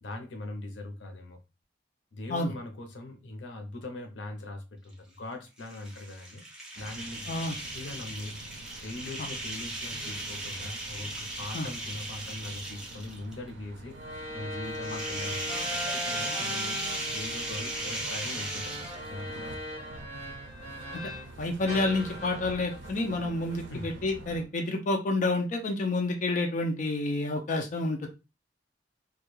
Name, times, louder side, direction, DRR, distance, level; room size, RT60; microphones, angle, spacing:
voice 1, 0.0-1.4 2.1-6.4 6.8-7.3 7.7-8.4 8.8-14.0 14.3-16.8 17.1-19.8 23.7-23.9, left 2 dB, 90° left, 0.6 m, -41 dB
sound 1, 5.6-13.3 14.7-19.2, right 1 dB, 5° right, 0.6 m, -37 dB
sound 2, 6.7-24.4, right 2 dB, 80° right, 0.4 m, -47 dB
sound 3, 13.9-21.3 21.7-24.1, equal, 40° right, 1.0 m, -40 dB
voice 2, 21.4-28.1, left 2 dB, 45° left, 0.4 m, -29 dB
2.3 x 2.2 x 3.0 m
head